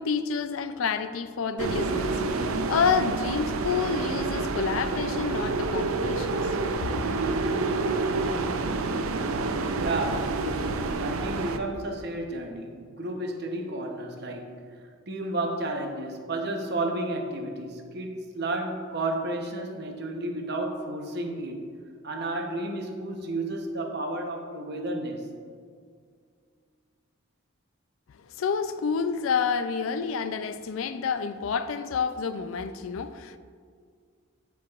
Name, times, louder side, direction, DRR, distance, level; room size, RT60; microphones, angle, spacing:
voice 1, 0.0-6.4 6.8-6.9 28.3-33.4, left 6 dB, 75° left, 0.4 m, -29 dB
sound 1, 1.6-11.6, right 3 dB, 90° right, 0.5 m, -28 dB
voice 2, 9.8-14.6 15.1-21.7 22.0-25.3, right 2 dB, 50° right, 0.8 m, -32 dB
12.5 x 4.7 x 2.4 m
head